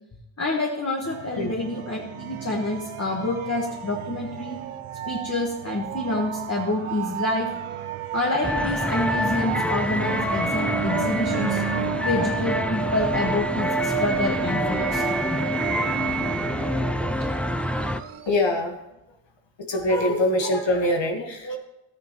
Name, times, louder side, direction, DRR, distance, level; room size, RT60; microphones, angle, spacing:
voice 1, 0.4-4.6 5.1-7.5 8.1-11.6 12.0-15.1 20.4-20.5, left 2 dB, 30° left, -1 dB, 1.6 m, -27 dB
sound 1, 1.0-18.6, right 8 dB, 80° right, 0.8 m, -31 dB
sound 2, 8.4-18.0, left 1 dB, 5° left, 0.4 m, -27 dB
voice 2, 18.3-18.8 19.7-21.6, left 1 dB, 60° left, 3 dB, 1.5 m, -23 dB
13.0 x 9.5 x 3.1 m, 0.92 s
cardioid pair, 60°, 49 cm